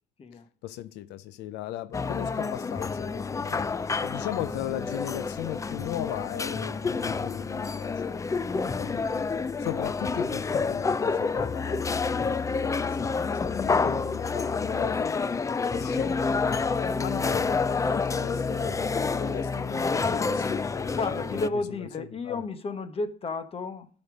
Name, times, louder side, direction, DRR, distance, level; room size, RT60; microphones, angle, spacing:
voice 1, 0.6-3.7 4.0-8.2 8.6-9.3 9.6-15.1 15.7-21.0 21.3-21.5 22.0-22.4, left 14 dB, 90° left, 0.6 m, -38 dB
sound 1, 1.9-21.5, left 4 dB, 20° left, 0.4 m, -28 dB
voice 2, 20.9-23.9, left 3 dB, 35° left, 1.4 m, -32 dB
13.0 x 5.3 x 5.1 m
cardioid pair, 110°, 17 cm